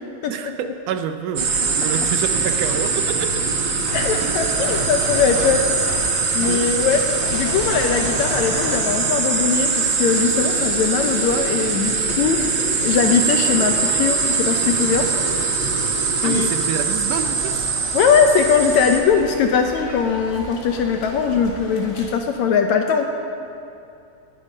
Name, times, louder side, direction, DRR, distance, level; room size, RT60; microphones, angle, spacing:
voice 1, 0.3-3.3 4.2-4.5 6.3-6.7 16.2-17.7, right 8 dB, 75° right, 8 dB, 2.0 m, -28 dB
sound 1, 1.4-19.0, right 4 dB, 50° right, 1.5 m, -22 dB
voice 2, 3.9-5.6 6.3-7.0 7.3-15.0 16.2-16.5 17.9-23.1, left 6 dB, 75° left, 4 dB, 1.8 m, -20 dB
sound 2, 3.9-4.2 4.6-6.1 6.4-6.6 6.9-8.9, left 3 dB, 50° left, 2.3 m, -31 dB
sound 3, 17.1-22.1, left 1 dB, 25° left, 2.1 m, -38 dB
19.5 x 11.5 x 5.4 m, 2.6 s
omnidirectional pair, 3.9 m